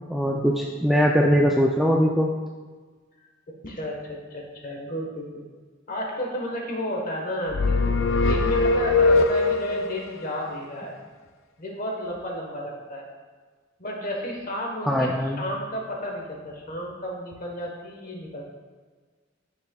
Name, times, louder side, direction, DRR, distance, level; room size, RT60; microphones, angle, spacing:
voice 1, 0.1-2.3 14.9-15.4, equal, ahead, -2 dB, 0.3 m, -21 dB
voice 2, 3.5-5.4 5.9-10.9 11.6-13.0 13.8-15.1 15.4-18.4, equal, 40° left, 0 dB, 1.2 m, -32 dB
sound 1, 7.5-9.9, left 3 dB, 70° left, 0.4 m, -21 dB
9.7 x 6.4 x 2.3 m, 1.4 s
head